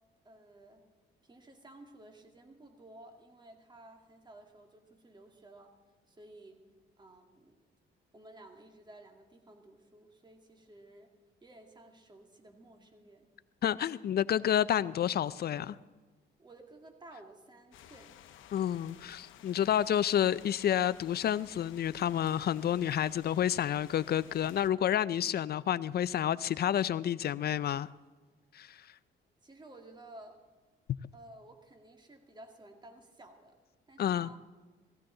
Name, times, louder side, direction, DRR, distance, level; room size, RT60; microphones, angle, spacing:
voice 1, 0.2-0.9 1.2-5.7 6.1-6.6 7.0-7.6 8.1-11.1 11.4-13.3 16.4-18.2 28.7-28.9 29.4-30.4 31.1-33.6 33.9-34.4, right 1 dB, 20° right, 4 dB, 2.1 m, -54 dB
voice 2, 13.6-15.8 18.5-27.9 28.5-28.8 34.0-34.3, left 10 dB, 55° left, 17 dB, 0.5 m, -29 dB
sound 1, 17.7-24.7, left 11 dB, 80° left, 0.8 m, -55 dB
17.5 x 15.5 x 3.8 m, 1.3 s
cardioid pair, 90°, 20 cm